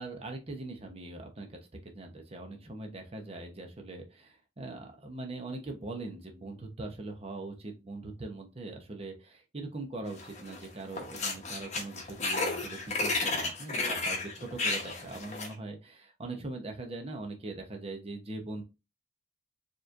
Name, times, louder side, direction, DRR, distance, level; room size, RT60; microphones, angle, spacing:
voice 1, 0.0-18.6, right 2 dB, 35° right, 3 dB, 0.8 m, -41 dB
sound 1, 10.2-10.6 10.9-15.5, left 3 dB, 40° left, 1.0 m, -32 dB
4.7 x 3.1 x 2.5 m, 0.27 s
head